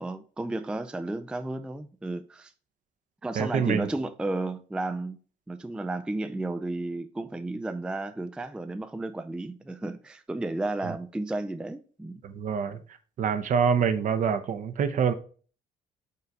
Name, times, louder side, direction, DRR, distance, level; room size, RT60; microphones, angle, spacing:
voice 1, 0.0-2.5 3.2-5.2 5.5-12.2, right 2 dB, 5° right, 0.3 m, -33 dB
voice 2, 3.4-3.9 10.8-11.0 12.2-12.8 13.2-15.1, right 6 dB, 50° right, 0.8 m, -26 dB
5.5 x 3.8 x 4.7 m
cardioid pair, 110°, 17 cm